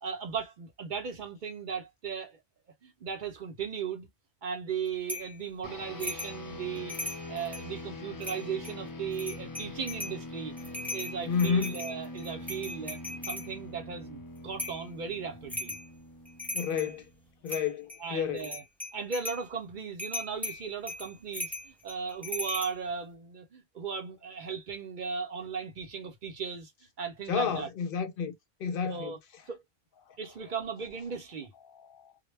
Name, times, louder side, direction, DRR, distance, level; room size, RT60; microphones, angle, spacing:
voice 1, 0.0-2.4 2.8-4.1 4.4-10.5 10.9-13.0 13.3-15.8 18.0-18.6 18.9-26.7 27.0-27.7 28.9-29.2 29.5-29.6 30.2-31.5, right 6 dB, 55° right, 0.7 m, -37 dB
sound 1, 5.1-5.4 6.0-6.4 6.7-7.7 8.2-8.7 9.1-10.2 10.6-13.5 14.6-14.9 15.5-15.9 16.2-17.0 17.5-18.0 18.4-19.4 20.0-22.7, left 1 dB, ahead, 0.7 m, -38 dB
sound 2, 5.6-17.3, left 2 dB, 35° left, 0.3 m, -43 dB
voice 2, 11.3-11.8 16.5-17.0 17.4-18.5 27.3-28.3 28.6-29.1 31.7-32.1, left 6 dB, 65° left, 0.7 m, -30 dB
2.1 x 2.1 x 3.1 m
omnidirectional pair, 1.1 m